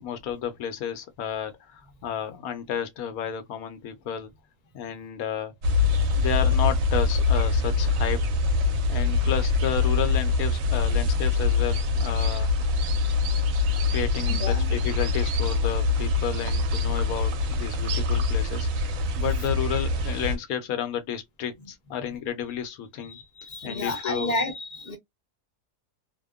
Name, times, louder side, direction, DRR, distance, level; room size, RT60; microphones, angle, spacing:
voice 1, 0.0-4.3 4.7-5.5 6.1-8.2 8.9-12.5 13.9-23.2 23.6-24.4, left 9 dB, 70° left, 1.0 m, -32 dB
sound 1, 5.6-20.3, left 3 dB, 65° right, 0.9 m, -24 dB
voice 2, 5.9-6.2 14.3-14.8 21.6-21.7 23.0-25.0, left 2 dB, 35° left, 0.6 m, -32 dB
2.7 x 2.1 x 2.3 m
omnidirectional pair, 1.7 m